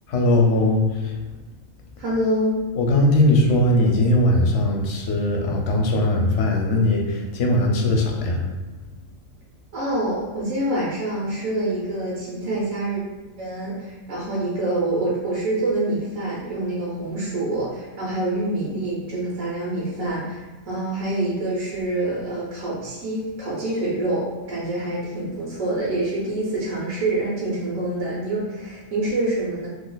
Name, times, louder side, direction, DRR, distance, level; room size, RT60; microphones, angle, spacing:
voice 1, 0.1-1.1 2.7-8.4, left 1 dB, 65° left, 1 dB, 0.9 m, -19 dB
voice 2, 2.0-2.5 9.7-13.0 13.4-29.7, right 1 dB, 85° right, -7 dB, 1.3 m, -26 dB
3.0 x 2.3 x 3.8 m, 1.2 s
omnidirectional pair, 1.4 m